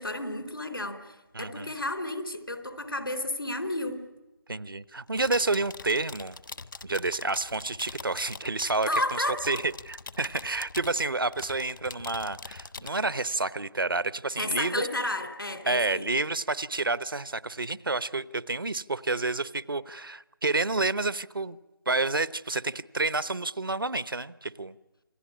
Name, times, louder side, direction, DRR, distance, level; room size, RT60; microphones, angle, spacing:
voice 1, 0.0-4.0 8.9-9.6 14.4-16.1, left 1 dB, 85° left, 8 dB, 3.9 m, -32 dB
voice 2, 1.3-1.7 4.5-6.4 6.8-14.8 15.7-21.6 21.9-24.8, right 3 dB, 80° right, 17 dB, 1.0 m, -29 dB
sound 1, 5.1-12.9, left 3 dB, 65° left, 1.3 m, -43 dB
28.0 x 20.0 x 9.9 m, 1.1 s
figure-of-eight pair, 155°, 11 cm